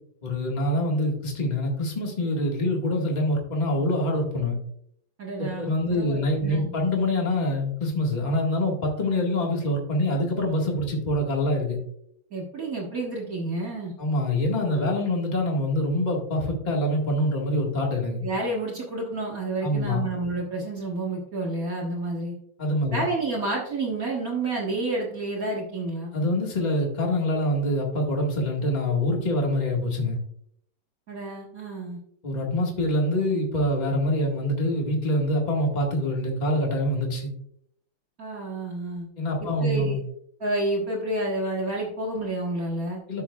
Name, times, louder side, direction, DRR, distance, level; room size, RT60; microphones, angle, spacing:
voice 1, 0.2-4.6 5.4-11.8 14.0-18.2 19.6-20.0 22.6-23.0 26.1-30.2 32.2-37.3 39.2-40.0 43.1-43.2, left 1 dB, 20° left, -1 dB, 1.7 m, -25 dB
voice 2, 5.2-6.7 12.3-13.9 18.2-22.3 22.9-26.1 31.1-32.0 38.2-39.1 39.6-40.0 40.4-43.0, right 2 dB, 45° right, -3 dB, 1.9 m, -30 dB
13.0 x 6.3 x 2.3 m, 0.71 s
omnidirectional pair, 2.2 m